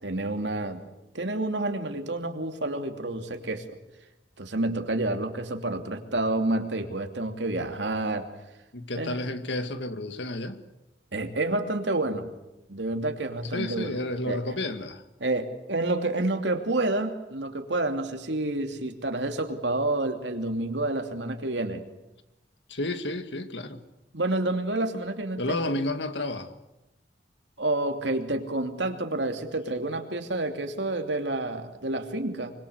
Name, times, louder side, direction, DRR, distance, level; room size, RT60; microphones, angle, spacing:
voice 1, 0.0-0.8 1.1-3.8 4.4-8.3 9.0-9.2 11.1-12.3 12.7-13.9 14.3-14.6 15.2-21.8 24.1-25.4 25.7-25.8 27.6-32.5, right 2 dB, 80° right, 2.9 m, -29 dB
voice 2, 8.7-10.6 13.5-15.0 22.7-23.8 25.4-26.6, left 1 dB, 80° left, 2.0 m, -31 dB
25.5 x 24.5 x 8.0 m
head